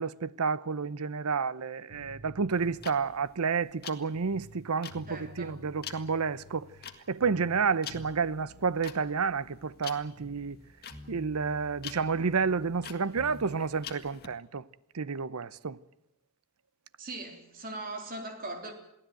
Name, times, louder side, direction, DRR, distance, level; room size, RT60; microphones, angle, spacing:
voice 1, 0.0-6.7 7.1-10.6 11.1-14.6 14.9-15.8, right 5 dB, 85° right, 0.7 m, -30 dB
sound 1, 1.9-4.6 4.9-7.0 7.2-10.6 10.9-13.5, left 1 dB, 55° right, 6.4 m, -51 dB
sound 2, 2.5-14.3, left 8 dB, 45° left, 1.8 m, -46 dB
voice 2, 5.1-5.7 17.0-18.7, right 2 dB, 40° right, 3.5 m, -40 dB
23.0 x 16.0 x 9.2 m
head